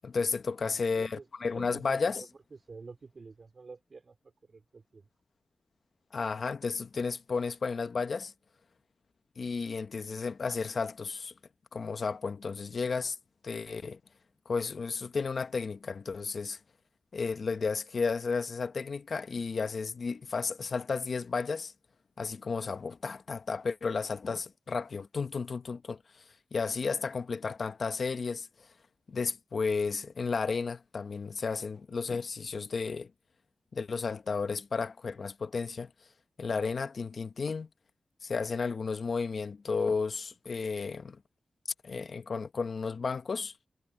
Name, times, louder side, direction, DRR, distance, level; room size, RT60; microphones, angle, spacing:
voice 1, 0.0-2.2 6.1-8.3 9.4-11.3 11.7-13.2 13.4-14.0 14.5-16.6 17.1-21.7 22.2-26.2 26.5-28.7 29.1-33.1 33.7-35.9 36.4-37.7 38.2-41.2 41.8-43.5, left 4 dB, 55° left, 0.7 m, -33 dB
voice 2, 0.7-1.3 1.6-4.2 4.4-5.1, right 4 dB, 45° right, 3.8 m, -49 dB
wide cardioid pair, 120°, 0 cm